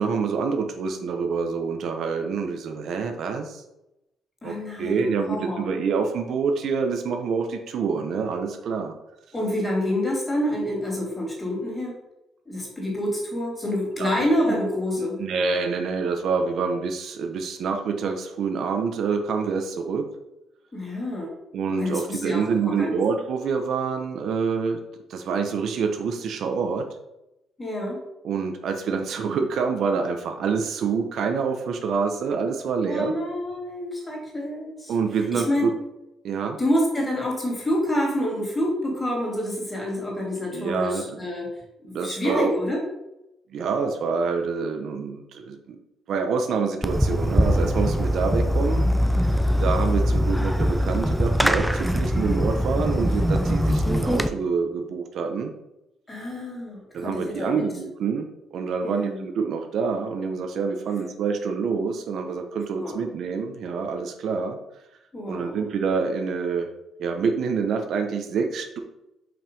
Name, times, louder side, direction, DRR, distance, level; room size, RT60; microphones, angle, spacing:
voice 1, 0.0-3.6 4.4-8.9 14.0-14.1 15.2-20.0 21.5-24.8 25.1-26.8 28.2-33.1 34.9-35.7 36.2-36.6 40.5-41.0 41.9-42.5 43.5-45.8 46.1-48.8 49.6-55.5 56.9-64.6 65.3-66.7 67.0-68.8, right 5 dB, 60° right, 5 dB, 0.9 m, -26 dB
voice 2, 4.4-5.7 9.3-11.9 12.4-15.2 20.7-21.3 21.8-23.0 27.6-28.0 32.8-35.7 36.6-41.5 41.8-42.8 56.1-57.7 58.8-59.2 62.7-63.0 65.1-65.6, left 1 dB, 15° left, -2 dB, 2.8 m, -27 dB
Fireworks, 46.8-54.3, equal, ahead, 0.5 m, -22 dB
5.8 x 5.4 x 5.4 m, 0.90 s
cardioid pair, 145°, 0 cm